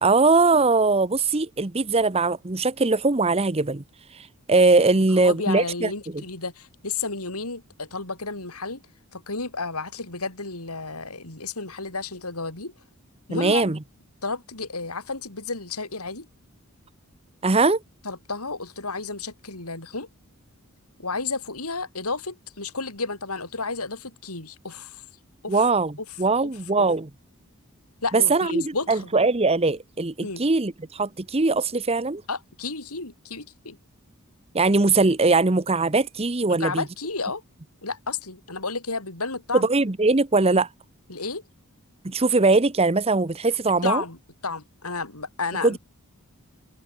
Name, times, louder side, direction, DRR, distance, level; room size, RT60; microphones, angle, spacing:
voice 1, 0.0-3.8 4.5-5.9 13.3-13.8 17.4-17.8 25.5-27.1 28.1-32.2 34.5-36.8 39.5-40.7 42.0-44.0 45.6-45.8, right 3 dB, 25° right, 0.8 m, -21 dB
voice 2, 4.9-8.8 9.1-12.7 13.3-13.7 14.2-16.3 18.0-20.1 21.0-25.0 25.4-25.7 26.4-26.5 26.8-26.9 28.0-29.1 30.2-30.5 32.3-33.8 36.5-37.4 37.8-39.7 41.1-41.4 43.8-44.2 44.4-45.8, left 3 dB, 85° left, 5.3 m, -32 dB
open air
head